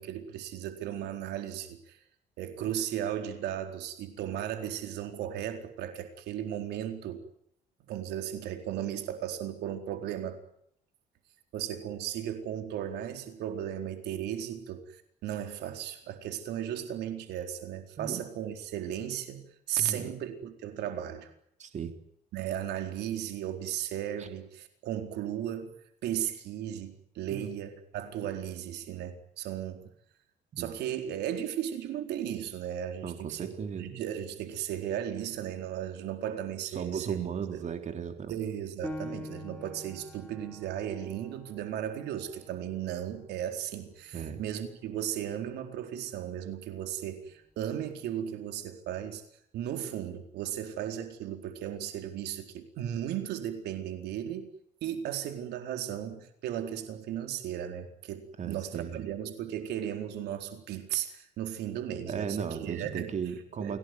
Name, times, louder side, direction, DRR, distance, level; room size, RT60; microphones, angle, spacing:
voice 1, 0.0-2.0 2.4-7.2 7.9-10.4 11.5-21.3 22.3-25.7 26.0-29.9 30.6-33.5 33.8-37.2 37.5-37.6 38.3-49.2 49.5-54.5 54.8-63.2 63.5-63.8, right 10 dB, 80° right, 6 dB, 4.3 m, -36 dB
voice 2, 19.8-20.1 21.6-21.9 24.2-24.3 27.3-27.5 30.5-30.7 33.0-34.0 36.7-38.4 44.1-44.4 58.4-59.1 62.1-63.8, right 7 dB, 45° right, 6 dB, 3.5 m, -36 dB
Piano, 38.8-44.0 44.5-44.6 45.2-45.7, left 1 dB, 5° left, 5.9 m, -45 dB
29.5 x 18.0 x 9.5 m, 0.70 s
cardioid pair, 110°, 17 cm